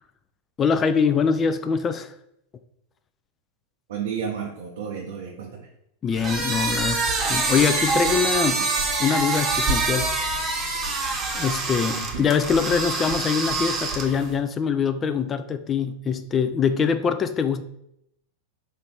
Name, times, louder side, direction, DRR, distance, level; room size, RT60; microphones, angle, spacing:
voice 1, 0.6-2.1 6.0-8.6 9.0-10.2 11.3-17.6, left 6 dB, 25° left, 0.3 m, -23 dB
voice 2, 3.9-5.7 11.9-12.3, right 7 dB, 60° right, 0.6 m, -32 dB
sound 1, 6.1-14.3, right 3 dB, 20° right, 0.9 m, -25 dB
4.4 x 2.6 x 4.4 m
figure-of-eight pair, 90°, 0 cm